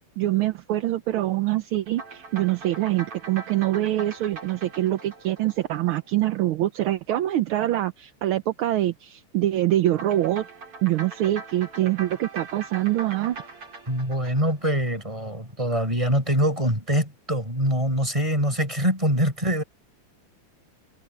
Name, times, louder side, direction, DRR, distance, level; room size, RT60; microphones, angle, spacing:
voice 1, 0.2-10.5 10.8-13.4, right 14 dB, 75° right, 1.6 m, -24 dB
sound 1, 1.9-6.5 9.9-15.3, right 4 dB, 90° right, 5.6 m, -42 dB
voice 2, 13.9-19.6, equal, 15° right, 7.7 m, -24 dB
omnidirectional pair, 2.4 m